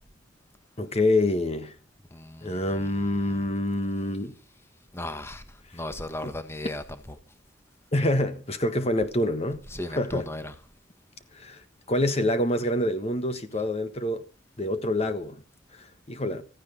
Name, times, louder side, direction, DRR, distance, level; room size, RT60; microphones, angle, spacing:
voice 1, 0.8-1.7 2.4-4.4 6.2-6.3 7.9-10.3 11.3-11.6 11.9-14.2 14.6-15.4 15.7-16.4, left 1 dB, 35° left, 1.4 m, -26 dB
voice 2, 2.1-2.6 4.9-5.4 5.7-6.8 9.7-10.4, left 1 dB, 15° left, 1.3 m, -35 dB
16.0 x 15.0 x 5.3 m
head